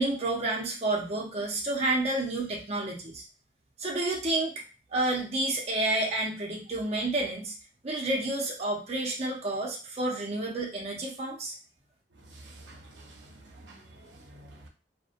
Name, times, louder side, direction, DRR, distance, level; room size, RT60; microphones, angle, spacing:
voice 1, 0.0-3.2 3.8-4.5 4.9-7.5 7.8-11.5, right 2 dB, 35° right, 0.6 m, -30 dB
voice 2, 12.3-14.7, right 1 dB, 85° right, 0.6 m, -50 dB
2.6 x 2.1 x 2.4 m
head